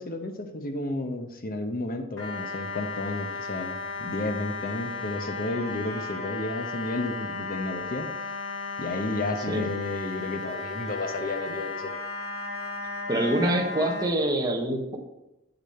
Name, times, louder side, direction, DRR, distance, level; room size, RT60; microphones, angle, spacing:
voice 1, 0.0-8.1 8.8-11.9, left 2 dB, 40° left, 6 dB, 0.9 m, -32 dB
sound 1, 2.2-14.0, left 3 dB, 65° left, 1.4 m, -35 dB
voice 2, 13.1-15.0, right 1 dB, 15° right, 0 dB, 1.2 m, -25 dB
8.3 x 6.8 x 4.3 m, 0.93 s
head